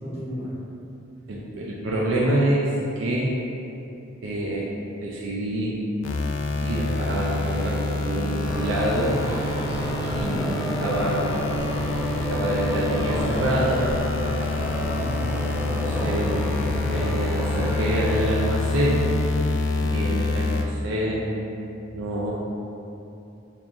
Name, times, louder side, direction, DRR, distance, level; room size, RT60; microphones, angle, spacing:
voice 1, 0.0-0.5 9.7-10.6 15.0-16.1 20.0-20.2, equal, 35° right, -10 dB, 1.0 m, -34 dB
voice 2, 1.3-3.4 4.2-5.8 6.6-9.2 10.1-11.3 12.3-13.9 15.6-16.4 16.8-19.2 19.8-21.4 21.9-22.3, right 1 dB, 80° right, -4 dB, 0.4 m, -26 dB
sound 1, 6.0-20.6, left 2 dB, 80° left, 0.3 m, -27 dB
sound 2, 8.4-18.2, equal, 5° right, 0.4 m, -31 dB
3.6 x 2.9 x 2.4 m, 2.8 s
head